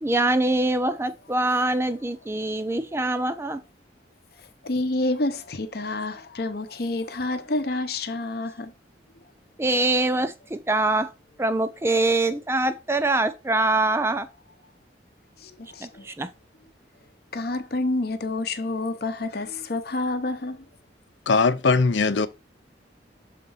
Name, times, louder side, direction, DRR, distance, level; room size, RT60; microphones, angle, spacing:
voice 1, 0.0-3.6 9.6-11.1 11.4-14.3 15.8-16.3, right 2 dB, 15° right, 0.4 m, -24 dB
voice 2, 4.4-8.7 15.4-16.1 17.3-20.6, left 2 dB, 55° left, 0.8 m, -28 dB
voice 3, 21.3-22.3, left 4 dB, 85° left, 0.6 m, -20 dB
6.8 x 3.7 x 5.5 m
head